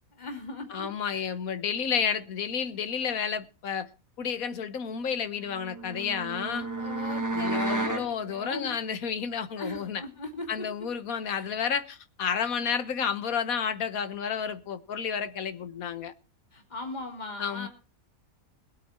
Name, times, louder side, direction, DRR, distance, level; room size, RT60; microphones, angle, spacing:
voice 1, 0.2-1.4 6.8-8.7 9.6-10.7 11.3-11.5 16.5-17.7, left 2 dB, 30° left, 2.8 m, -39 dB
voice 2, 0.7-3.9 4.2-6.7 7.3-10.0 10.5-16.1 17.4-17.7, left 7 dB, 80° left, 1.6 m, -31 dB
sound 1, 5.5-8.1, right 2 dB, 15° right, 1.3 m, -32 dB
21.0 x 8.6 x 4.4 m
omnidirectional pair, 1.5 m